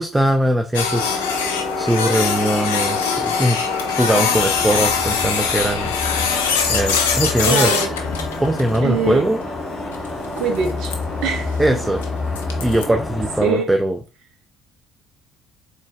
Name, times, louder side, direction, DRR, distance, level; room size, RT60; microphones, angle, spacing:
voice 1, 0.0-3.6 4.0-5.9 6.7-7.7 8.4-9.4 11.6-12.0 12.6-14.0, right 1 dB, 10° right, 0.4 m, -20 dB
Printer, 0.7-12.8, left 6 dB, 75° left, 0.4 m, -23 dB
sound 1, 1.0-13.6, left 1 dB, 10° left, 1.2 m, -32 dB
sound 2, 4.3-13.5, left 3 dB, 30° left, 1.0 m, -30 dB
voice 2, 7.5-7.9 8.8-9.3 10.4-11.8 13.4-13.8, right 6 dB, 60° right, 0.7 m, -23 dB
3.8 x 3.0 x 2.3 m
figure-of-eight pair, 50°, 0 cm